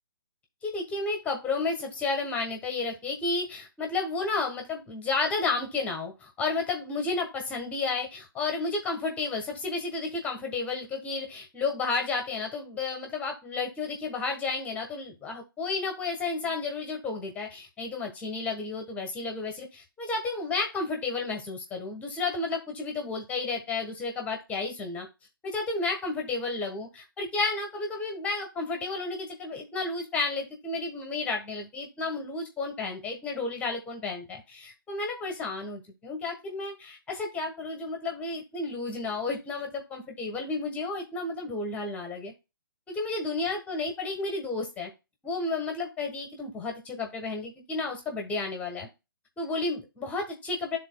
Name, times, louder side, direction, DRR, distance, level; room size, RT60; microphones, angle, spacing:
voice 1, 0.6-25.1 25.4-42.3 42.9-44.9 45.2-48.9 49.4-50.8, left 3 dB, 10° left, 4 dB, 1.1 m, -32 dB
11.0 x 3.8 x 2.3 m, 0.25 s
figure-of-eight pair, 140°, 12 cm